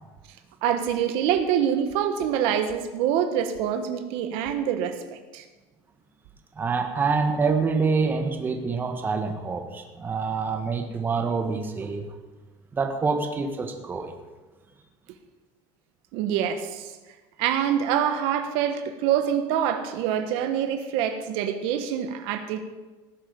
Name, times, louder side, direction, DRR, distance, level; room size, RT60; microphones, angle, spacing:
voice 1, 0.6-5.0 5.3-5.4 16.1-16.9 17.4-22.6, right 9 dB, 70° right, 8 dB, 1.3 m, -25 dB
voice 2, 6.6-12.0 12.7-14.1, right 4 dB, 20° right, 4 dB, 1.6 m, -26 dB
17.5 x 10.0 x 5.2 m, 1.2 s
cardioid pair, 155°, 10 cm